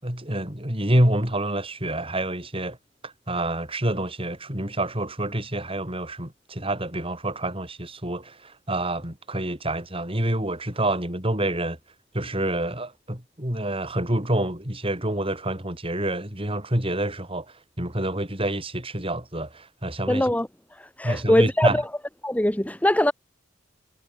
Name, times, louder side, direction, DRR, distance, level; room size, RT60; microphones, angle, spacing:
voice 1, 0.0-2.8 3.0-11.8 12.1-20.3 21.0-21.8, right 1 dB, 30° right, 7.0 m, -27 dB
voice 2, 20.1-21.8 22.2-23.1, left 1 dB, 10° left, 1.0 m, -22 dB
head